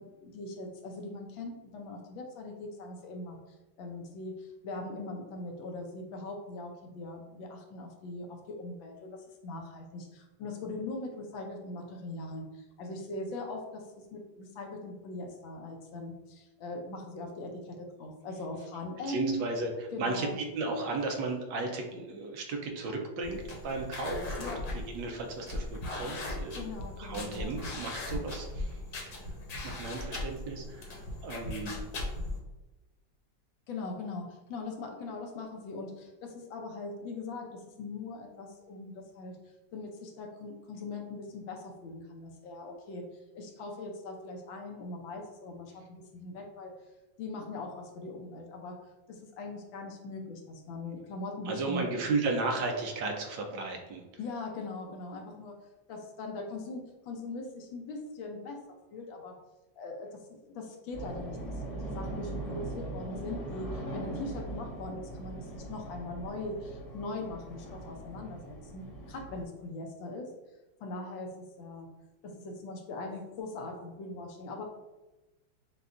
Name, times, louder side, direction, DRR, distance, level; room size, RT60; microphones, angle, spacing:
voice 1, 0.0-3.4 3.8-19.5 19.9-20.4 24.4-24.6 26.6-27.6 33.7-39.4 39.7-43.0 43.3-46.7 47.2-48.8 49.1-51.9 54.2-55.6 55.9-59.4 59.8-70.3 70.8-71.9 72.2-74.6, left 2 dB, 85° left, 2 dB, 1.5 m, -41 dB
voice 2, 19.0-24.5 24.7-26.6 27.0-29.3 29.6-31.8 51.5-54.0, right 3 dB, 75° right, 3 dB, 1.4 m, -35 dB
sound 1, 23.2-32.4, left 2 dB, 60° left, 1.3 m, -38 dB
sound 2, 60.9-69.4, right 2 dB, 25° left, 0.9 m, -40 dB
6.8 x 2.3 x 2.5 m, 1.1 s
omnidirectional pair, 2.0 m